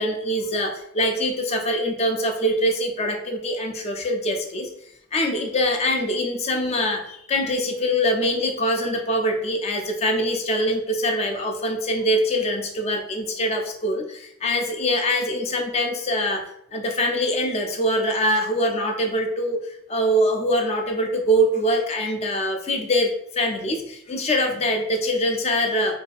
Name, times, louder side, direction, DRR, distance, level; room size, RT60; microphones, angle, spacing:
voice 1, 0.0-4.7 5.1-7.0 7.3-14.0 14.4-16.4 16.7-19.6 19.9-23.1 23.4-23.8 24.1-25.9, equal, 30° left, 3 dB, 0.3 m, -23 dB
2.6 x 2.4 x 2.3 m, 0.74 s
head